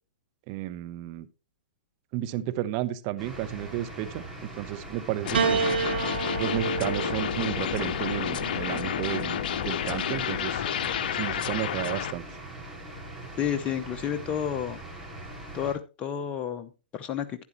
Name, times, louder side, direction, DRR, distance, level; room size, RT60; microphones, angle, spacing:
voice 1, 0.5-1.3 2.1-5.7 6.4-9.4 9.6-10.6 11.1-12.2, right 14 dB, 40° right, 0.9 m, -32 dB
sound 1, 3.2-15.7, right 2 dB, 5° right, 5.5 m, -42 dB
sound 2, 5.2-12.1, left 9 dB, 60° left, 0.7 m, -30 dB
Piano, 5.3-9.8 10.9-11.6, right 6 dB, 75° right, 0.8 m, -31 dB
voice 2, 13.4-14.8 15.5-17.4, left 9 dB, 25° left, 0.8 m, -31 dB
12.0 x 9.7 x 3.1 m
hypercardioid pair, 120°, 6 cm